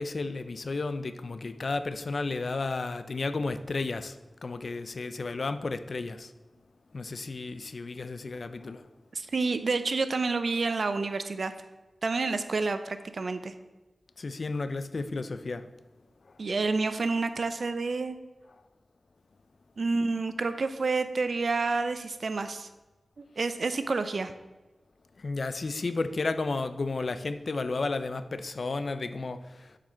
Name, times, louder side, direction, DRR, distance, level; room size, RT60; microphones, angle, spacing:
voice 1, 0.0-4.2 4.4-6.3 6.9-8.8 14.2-15.7 25.2-29.8, left 3 dB, 65° left, 0.5 m, -33 dB
voice 2, 9.1-11.5 12.0-13.5 16.4-18.2 19.8-22.7 23.2-24.3, right 3 dB, 70° right, 0.6 m, -29 dB
7.4 x 5.0 x 5.6 m
cardioid pair, 50°, 0 cm